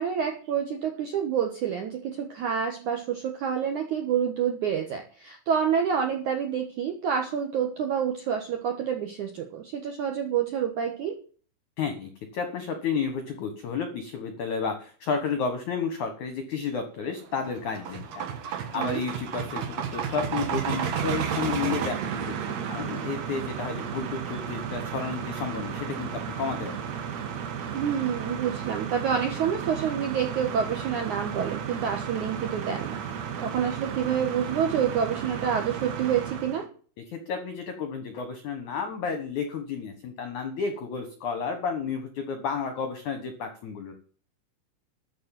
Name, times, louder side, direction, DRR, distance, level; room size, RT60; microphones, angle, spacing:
voice 1, 0.0-11.1 18.7-19.0 27.7-33.0 33.4-36.7, right 8 dB, 70° right, 3 dB, 1.8 m, -28 dB
voice 2, 11.8-18.2 18.7-22.4 22.7-26.8 37.0-43.9, left 5 dB, 70° left, 7 dB, 1.9 m, -32 dB
sound 1, 17.2-36.6, right 8 dB, 85° right, 1.5 m, -33 dB
13.0 x 5.4 x 9.0 m, 0.42 s
omnidirectional pair, 5.5 m